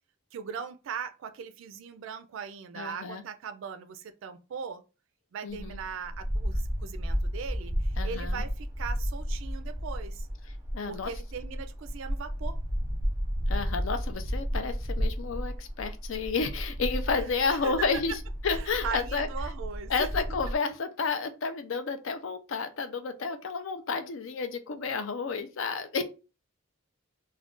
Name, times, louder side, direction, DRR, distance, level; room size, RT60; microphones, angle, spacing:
voice 1, 0.3-4.8 5.3-10.3 10.9-12.6 17.5-17.9 18.5-20.1, right 6 dB, 70° right, 0.3 m, -39 dB
voice 2, 2.7-3.2 5.4-5.8 8.0-8.4 10.5-11.1 13.5-19.3 19.9-26.0, left 4 dB, 70° left, 0.4 m, -31 dB
sound 1, 5.5-20.5, equal, 15° right, 0.7 m, -33 dB
2.4 x 2.2 x 3.6 m
head